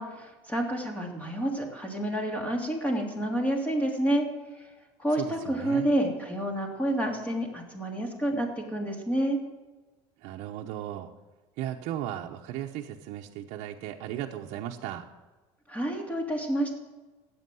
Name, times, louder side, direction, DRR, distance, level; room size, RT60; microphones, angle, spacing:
voice 1, 0.0-4.3 4.5-4.7 5.0-9.4 15.7-16.7, right 1 dB, 10° left, 1 dB, 3.2 m, -29 dB
voice 2, 5.1-5.9 10.2-11.1 11.6-15.0, right 12 dB, 70° right, 0 dB, 1.0 m, -36 dB
14.0 x 8.9 x 7.8 m, 1.2 s
supercardioid pair, 115°, 12 cm